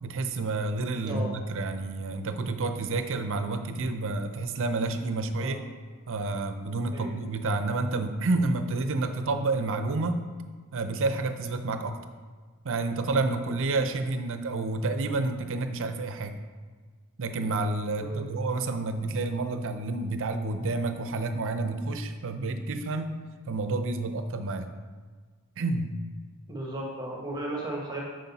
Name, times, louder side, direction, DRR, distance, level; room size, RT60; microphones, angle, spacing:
voice 1, 0.0-5.6 6.1-10.2 10.7-12.0 12.6-16.4 17.2-23.2 23.5-24.7 25.6-25.9, right 3 dB, 60° right, 8 dB, 0.6 m, -29 dB
voice 2, 1.0-1.4 5.4-5.6 6.9-7.2 18.0-18.3 26.5-28.0, right 1 dB, 20° right, -2 dB, 1.2 m, -35 dB
8.8 x 6.3 x 4.1 m, 1.5 s
head